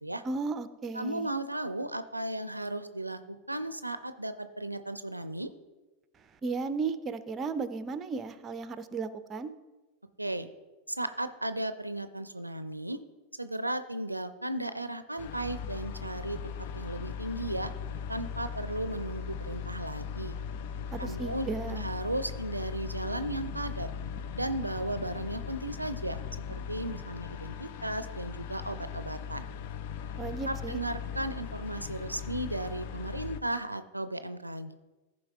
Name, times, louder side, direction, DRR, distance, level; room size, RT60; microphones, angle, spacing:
voice 1, 0.2-1.3 6.4-9.5 20.9-21.8 30.2-30.8, right 4 dB, 20° right, 12 dB, 0.6 m, -35 dB
voice 2, 0.9-5.5 10.2-10.5 10.9-13.0 13.4-17.7 18.1-20.4 21.0-23.9 24.3-26.2 26.5-29.5 30.5-34.7, right 1 dB, 85° right, 11 dB, 0.5 m, -35 dB
sound 1, 15.2-33.4, left 7 dB, 50° left, 0.5 m, -39 dB
14.5 x 5.0 x 3.6 m, 1.1 s
figure-of-eight pair, 90°, 0 cm